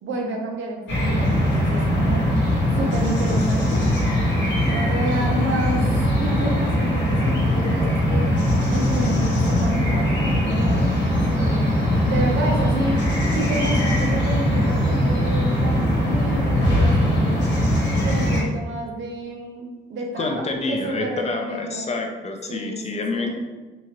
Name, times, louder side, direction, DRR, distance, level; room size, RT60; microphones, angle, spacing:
voice 1, 0.0-2.2 2.8-3.9 4.7-5.9 6.2-8.3 8.7-11.7 12.1-13.0 13.3-17.5 18.0-21.8 22.5-23.4, right 1 dB, 70° right, 1 dB, 0.8 m, -30 dB
sound 1, 0.9-18.4, equal, 65° left, 1.1 m, -21 dB
voice 2, 20.2-23.4, left 3 dB, 35° left, 2 dB, 0.6 m, -27 dB
3.7 x 2.8 x 2.9 m, 1.3 s
cardioid pair, 90°, 20 cm